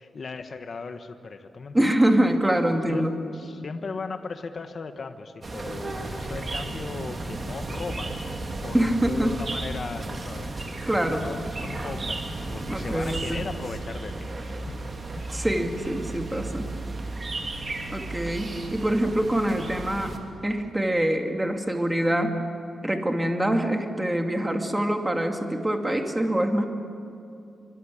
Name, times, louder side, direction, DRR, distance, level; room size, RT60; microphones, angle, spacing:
voice 1, 0.0-1.9 2.9-8.2 8.6-10.5 11.0-12.2 12.5-14.7 15.2-15.4, left 4 dB, 45° left, 7 dB, 1.4 m, -37 dB
voice 2, 1.7-3.2 8.7-9.4 10.9-11.2 12.7-13.5 15.3-16.7 17.9-20.2 20.4-22.4 22.8-26.6, right 1 dB, 10° right, 3 dB, 2.6 m, -25 dB
sound 1, 5.4-20.2, right 2 dB, 35° right, 3.0 m, -34 dB
25.5 x 25.0 x 8.7 m, 2.6 s
wide cardioid pair, 120°, 0 cm